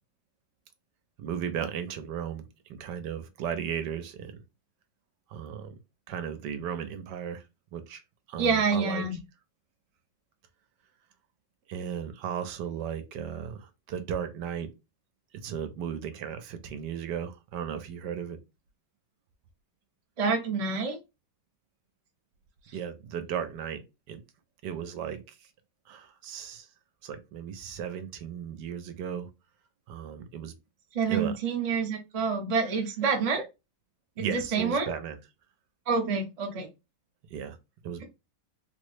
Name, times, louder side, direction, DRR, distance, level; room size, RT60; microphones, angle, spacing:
voice 1, 1.2-2.4 2.7-4.4 5.3-5.7 6.1-7.4 7.7-8.0 8.3-9.0 11.7-14.7 15.4-18.4 22.7-23.8 24.1-24.2 24.6-25.2 25.9-26.7 27.0-29.3 29.9-30.5 31.1-31.4 34.2-35.2 37.3-37.6 37.8-38.0, right 8 dB, 80° right, 1.2 m, -35 dB
voice 2, 8.4-9.2 20.2-21.0 30.9-33.4 34.2-34.9 35.9-36.7, right 5 dB, 40° right, 0.5 m, -27 dB
3.7 x 2.1 x 3.1 m
omnidirectional pair, 1.9 m